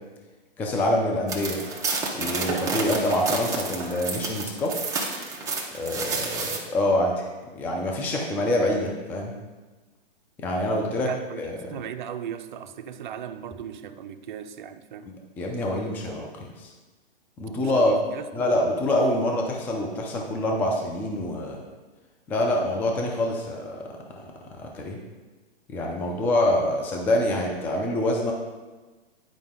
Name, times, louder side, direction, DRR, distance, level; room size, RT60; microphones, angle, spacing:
voice 1, 0.6-1.6 2.2-4.7 5.7-7.3 7.6-9.3 10.4-11.1 11.4-11.8 15.1-16.3 16.6-16.7 17.4-17.9 18.3-21.6 22.3-23.9 24.1-24.2 24.6-25.0 25.7-28.3, left 1 dB, 5° left, 0 dB, 0.4 m, -26 dB
sound 1, 1.3-6.6, right 3 dB, 10° right, 0.9 m, -30 dB
voice 2, 11.1-11.5 11.7-15.1 17.6-18.6, right 9 dB, 50° right, 8 dB, 0.6 m, -37 dB
9.8 x 5.1 x 3.7 m, 1.2 s
hypercardioid pair, 140°, 30 cm